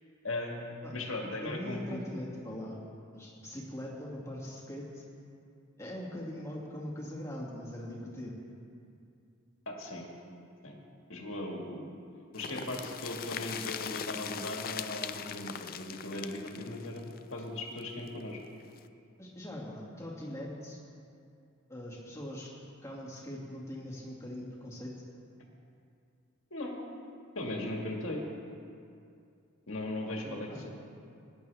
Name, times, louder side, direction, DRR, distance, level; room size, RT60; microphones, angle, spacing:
voice 1, 0.2-2.0 9.7-10.1 10.6-10.8 11.1-11.9 12.3-18.4 26.5-26.8 27.3-28.2 29.7-30.7, left 1 dB, 65° left, 0 dB, 2.0 m, -38 dB
voice 2, 1.4-2.8 3.1-5.0 5.8-8.3 19.2-20.8 21.7-22.5 22.8-24.9 30.2-30.7, left 1 dB, 15° left, -5 dB, 2.3 m, -41 dB
sound 1, 12.3-18.1 18.4-18.5 18.8-18.9, left 8 dB, 45° left, 0.4 m, -40 dB
20.5 x 11.0 x 3.5 m, 2.4 s
head